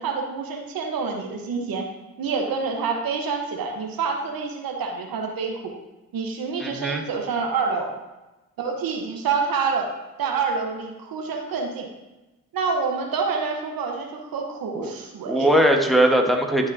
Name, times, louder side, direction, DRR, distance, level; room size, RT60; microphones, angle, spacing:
voice 1, 0.0-1.9 2.2-5.7 6.1-7.9 8.6-9.9 10.2-11.9 12.5-15.5, right 5 dB, 80° right, 2 dB, 1.2 m, -27 dB
voice 2, 6.6-7.0 14.7-14.9 15.3-16.7, right 1 dB, ahead, 2 dB, 1.3 m, -20 dB
11.5 x 4.9 x 2.7 m, 1.1 s
supercardioid pair, 50°, 35 cm